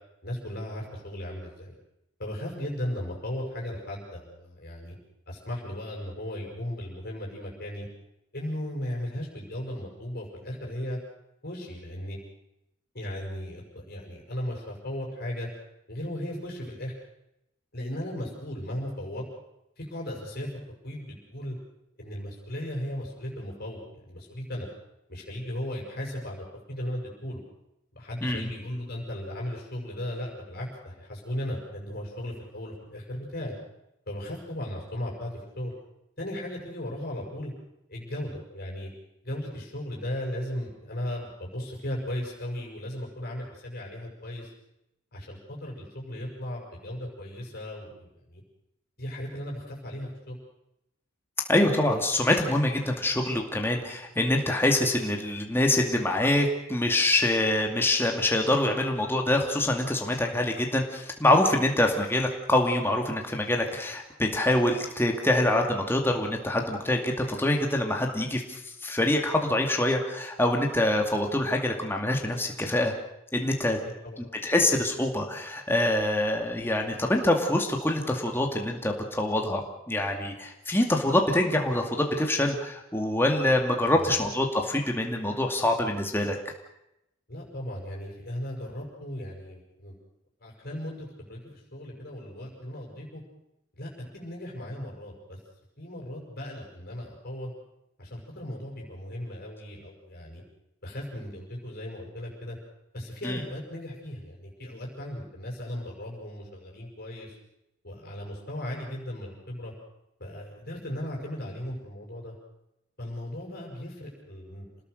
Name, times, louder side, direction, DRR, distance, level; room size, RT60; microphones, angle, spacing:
voice 1, 0.2-1.7 2.2-4.9 5.3-7.9 8.3-11.0 11.4-12.2 12.9-15.5 15.9-16.9 17.7-19.2 19.8-20.5 20.8-21.6 22.0-24.7 25.1-27.4 27.9-33.5 34.1-35.7 36.2-37.5 37.9-38.9 39.2-44.5 45.1-48.4 49.0-50.4 74.0-74.2 83.9-84.2 87.3-89.9 90.4-93.2 93.7-95.4 95.8-97.5 98.0-100.4 100.8-102.6 102.9-107.4 107.8-109.7 110.2-112.3 113.0-114.7, left 1 dB, 45° left, -2 dB, 6.1 m, -36 dB
voice 2, 51.5-72.9 73.3-73.8 74.2-86.4 103.2-103.4, left 1 dB, 10° left, 2 dB, 2.4 m, -25 dB
28.0 x 19.5 x 6.6 m, 0.86 s
head